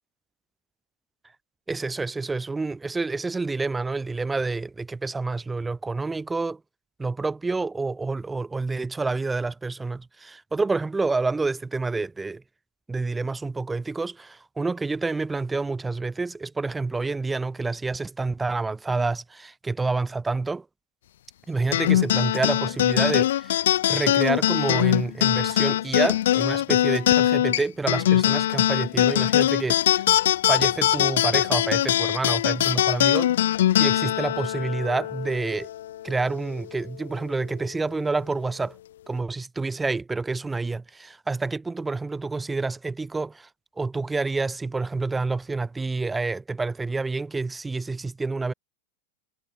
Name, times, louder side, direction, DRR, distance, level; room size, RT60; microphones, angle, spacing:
voice 1, 1.7-6.6 7.0-12.4 12.9-20.7 21.5-23.6 23.9-30.0 30.5-33.5 33.8-35.7 36.0-38.8 39.1-43.5 43.8-48.5, right 3 dB, 10° right, 5.2 m, -28 dB
sound 1, 21.7-36.5, left 12 dB, 75° left, 2.7 m, -22 dB
hypercardioid pair, 100°, 0 cm